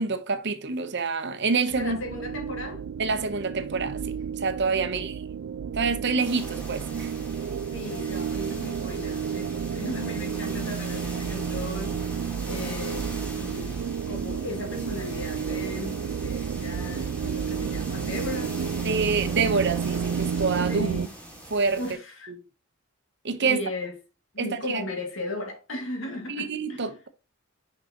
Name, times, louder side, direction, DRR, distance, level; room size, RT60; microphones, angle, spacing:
voice 1, 0.0-2.0 3.0-5.2 5.7-7.1 18.8-20.9 21.5-21.8 23.2-23.6 24.4-24.8 26.3-27.1, right 4 dB, 60° right, 1.0 m, -27 dB
voice 2, 1.7-2.8 4.9-5.1 7.7-18.6 20.7-21.1 21.8-22.3 23.4-24.0 24.3-26.9, left 2 dB, 70° left, 2.4 m, -36 dB
sound 1, 1.7-21.1, right 7 dB, 85° right, 0.4 m, -31 dB
sound 2, 6.2-21.9, equal, 5° left, 2.5 m, -42 dB
6.5 x 5.8 x 3.0 m
head